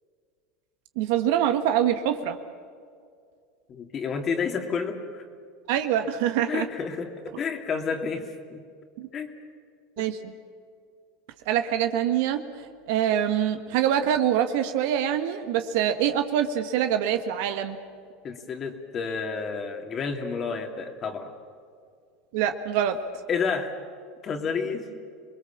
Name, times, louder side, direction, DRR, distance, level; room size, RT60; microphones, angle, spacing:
voice 1, 1.0-2.4 5.7-6.7 9.0-9.1 10.0-10.3 11.5-12.4 12.9-17.8 22.3-23.0, right 10 dB, 70° right, 8 dB, 1.4 m, -24 dB
voice 2, 3.7-5.2 6.2-8.6 9.1-9.3 10.0-10.1 18.2-21.3 23.3-23.7 24.2-24.9, left 5 dB, 35° left, 4 dB, 2.8 m, -30 dB
27.0 x 20.5 x 7.3 m, 2.2 s
supercardioid pair, 105°, 0 cm